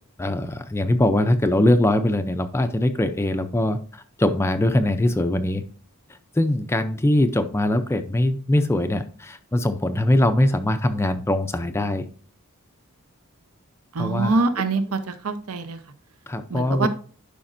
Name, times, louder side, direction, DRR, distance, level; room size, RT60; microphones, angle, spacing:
voice 1, 0.2-5.6 6.4-12.0 14.0-14.4 16.3-16.9, left 1 dB, 10° left, 8 dB, 0.4 m, -22 dB
voice 2, 13.9-15.8 16.5-16.9, right 3 dB, 70° right, 10 dB, 0.7 m, -24 dB
11.5 x 5.0 x 2.5 m, 0.41 s
head